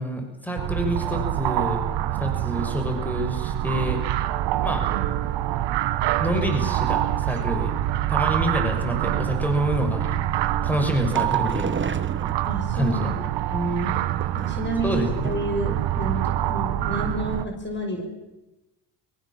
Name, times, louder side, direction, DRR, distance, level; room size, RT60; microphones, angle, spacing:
voice 1, 0.0-1.9 2.2-4.0 4.6-4.8 6.2-7.7 8.1-10.2 10.6-12.0 12.7-13.2 14.8-15.3, equal, 5° left, 4 dB, 6.4 m, -27 dB
sound 1, 0.6-17.4, right 13 dB, 70° right, 1.4 m, -26 dB
sound 2, 10.8-12.9 13.9-14.8 15.2-15.7 15.9-16.0 16.4-16.5, right 5 dB, 25° right, 1.5 m, -33 dB
voice 2, 12.5-13.0 13.5-14.0 14.4-18.1, right 1 dB, 25° left, 4 dB, 6.0 m, -29 dB
23.0 x 23.0 x 7.6 m, 0.99 s
supercardioid pair, 80°, 44 cm